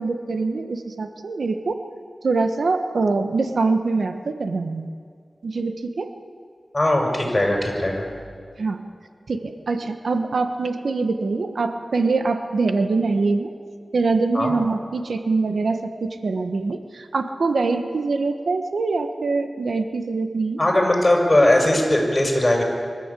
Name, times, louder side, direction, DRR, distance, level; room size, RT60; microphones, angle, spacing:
voice 1, 0.0-1.8 2.2-4.9 5.4-6.1 8.6-8.8 9.3-13.5 13.9-20.6, right 3 dB, 75° right, 7 dB, 1.3 m, -24 dB
voice 2, 6.7-8.0 14.3-14.5 20.6-22.6, left 1 dB, 25° left, 1 dB, 6.0 m, -19 dB
24.5 x 14.0 x 8.5 m, 2.1 s
wide cardioid pair, 65°, 0 cm